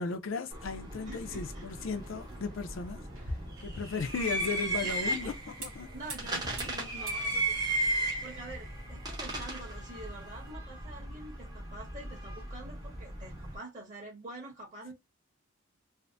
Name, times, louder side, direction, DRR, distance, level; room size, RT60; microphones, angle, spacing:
voice 1, 0.0-3.3 3.6-5.3 5.6-5.9, left 4 dB, 65° left, 0.4 m, -36 dB
sound 1, 0.5-13.6, right 2 dB, 20° right, 0.7 m, -36 dB
voice 2, 1.0-1.7 4.8-5.3 5.9-7.8 8.2-14.9, right 2 dB, 35° right, 1.3 m, -46 dB
sound 2, 1.2-10.5, right 1 dB, 70° right, 1.5 m, -47 dB
3.3 x 2.0 x 2.5 m
head